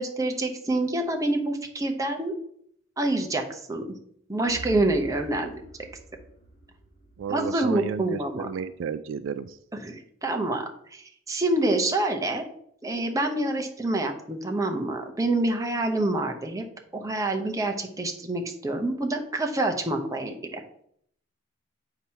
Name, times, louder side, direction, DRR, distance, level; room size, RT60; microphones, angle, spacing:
voice 1, 0.0-2.3 3.0-3.8 4.3-5.5 7.3-8.5 9.8-12.4 12.8-16.6 16.9-20.6, right 2 dB, 15° right, 3 dB, 0.7 m, -27 dB
sound 1, 4.5-8.4, right 1 dB, 40° left, 1.2 m, -45 dB
voice 2, 7.2-9.6, right 7 dB, 70° right, 13 dB, 0.3 m, -32 dB
7.9 x 2.9 x 5.6 m, 0.68 s
head